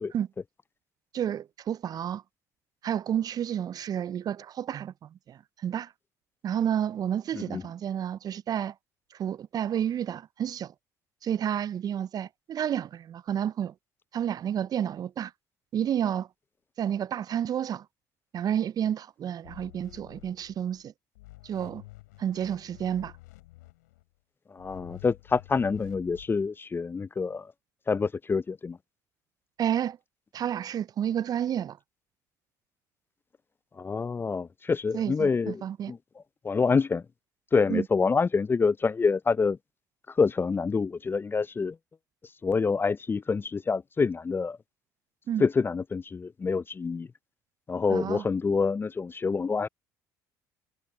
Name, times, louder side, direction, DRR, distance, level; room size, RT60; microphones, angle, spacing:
voice 1, 1.1-2.2 2.8-5.9 6.4-8.7 9.1-10.7 11.2-13.7 14.1-15.3 15.7-16.3 16.8-17.9 18.3-20.9 21.4-21.8 22.2-23.1 29.6-30.0 30.3-31.8 34.9-35.9 37.7-37.9 45.3-45.5 47.9-48.3, right 9 dB, 45° right, 0.4 m, -30 dB
sound 1, 19.4-20.8 21.1-24.0 24.6-26.3, left 20 dB, 85° left, 7.5 m, -50 dB
voice 2, 24.5-27.5 27.9-28.8 33.8-35.6 35.9-36.0 36.4-37.0 37.5-39.6 40.2-41.7 42.4-44.6 45.4-47.1 47.7-49.7, left 4 dB, 25° left, 0.4 m, -26 dB
hypercardioid pair, 65°, 9 cm